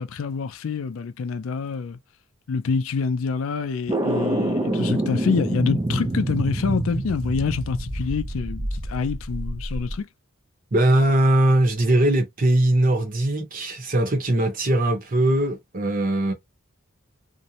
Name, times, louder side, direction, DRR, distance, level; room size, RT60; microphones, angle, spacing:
voice 1, 0.0-2.0 2.5-10.1, left 5 dB, 80° left, 0.4 m, -26 dB
sound 1, 3.9-10.0, right 1 dB, 20° right, 0.4 m, -27 dB
voice 2, 10.7-16.3, right 1 dB, 40° right, 0.8 m, -20 dB
2.6 x 2.0 x 2.8 m
head